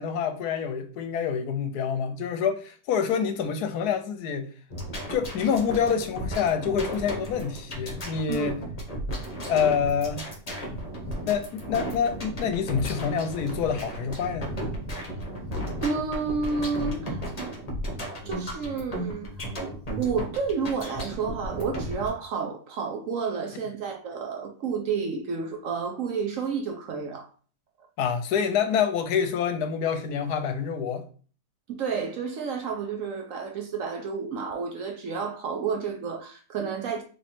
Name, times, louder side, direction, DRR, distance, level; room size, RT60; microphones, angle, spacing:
voice 1, 0.0-4.5 5.1-8.6 9.5-10.3 11.3-14.5 28.0-31.0, left 7 dB, 75° left, 1.1 m, -27 dB
sound 1, 4.7-22.1, equal, 30° left, 0.8 m, -34 dB
voice 2, 15.8-17.3 18.2-19.5 20.0-27.3 31.7-37.0, right 5 dB, 65° right, 0.9 m, -30 dB
3.2 x 3.0 x 4.2 m
omnidirectional pair, 1.8 m